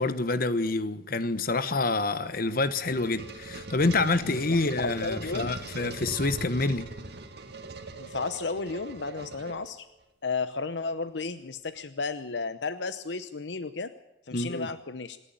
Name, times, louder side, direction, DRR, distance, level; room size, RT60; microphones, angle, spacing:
voice 1, 0.0-6.9 14.3-14.7, left 3 dB, 55° left, 1.3 m, -27 dB
sound 1, 2.3-10.0, right 3 dB, 65° right, 2.2 m, -41 dB
voice 2, 4.2-5.5 8.0-9.9 10.2-13.9 14.3-15.2, left 4 dB, 80° left, 0.8 m, -33 dB
26.5 x 11.5 x 9.0 m
head